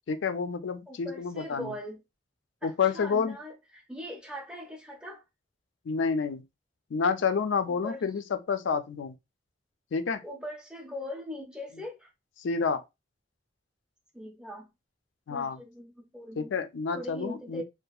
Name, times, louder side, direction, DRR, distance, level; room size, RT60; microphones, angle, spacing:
voice 1, 0.1-1.7 2.6-3.3 5.9-6.4 6.9-8.2 8.5-9.1 9.9-10.2 12.4-12.8 15.3-15.6 16.4-17.6, left 5 dB, 80° left, 0.4 m, -29 dB
voice 2, 0.9-2.0 2.6-5.2 7.7-8.1 10.2-12.1 14.1-14.7 15.3-16.5 16.9-17.6, equal, 5° right, 0.5 m, -41 dB
2.7 x 2.4 x 2.3 m
head